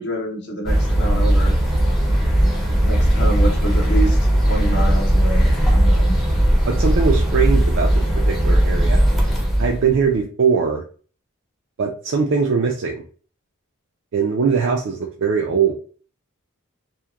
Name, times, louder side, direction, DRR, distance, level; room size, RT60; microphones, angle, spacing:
voice 1, 0.0-1.6 2.8-4.2 4.5-6.2, right 1 dB, 55° left, 2 dB, 0.7 m, -27 dB
sound 1, 0.7-10.1, right 1 dB, ahead, 0.5 m, -17 dB
voice 2, 6.7-9.0 9.6-10.8 11.8-13.0 14.1-15.7, right 6 dB, 60° right, 0 dB, 0.4 m, -21 dB
2.8 x 2.1 x 2.3 m, 0.41 s
head